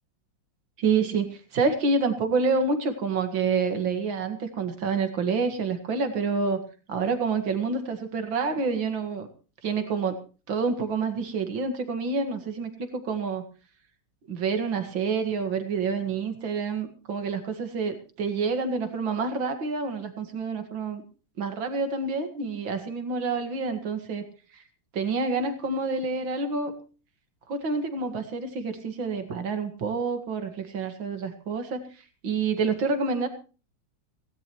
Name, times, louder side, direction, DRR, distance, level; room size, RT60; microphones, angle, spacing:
voice 1, 0.8-6.6 6.9-9.3 9.6-10.2 10.5-13.4 14.3-21.0 21.4-24.2 24.5-24.6 24.9-26.7 27.5-33.3, right 4 dB, 85° right, 8 dB, 2.6 m, -28 dB
18.0 x 17.0 x 3.1 m, 0.36 s
omnidirectional pair, 2.1 m